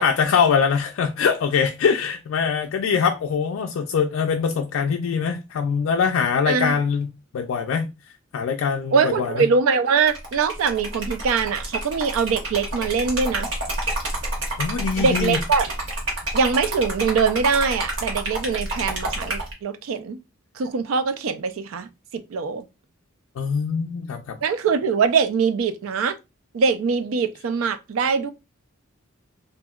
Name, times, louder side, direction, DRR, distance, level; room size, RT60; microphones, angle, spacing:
voice 1, 0.0-7.9 8.3-9.5 14.6-15.4 23.4-24.4, left 6 dB, 80° left, 0.3 m, -23 dB
voice 2, 6.5-6.8 8.9-13.5 15.0-15.7 16.3-20.2 20.6-22.6 24.4-26.2 26.5-28.3, right 5 dB, 90° right, 0.4 m, -22 dB
Liquid, 10.0-19.5, right 1 dB, 65° right, 1.0 m, -29 dB
2.7 x 2.5 x 2.3 m
head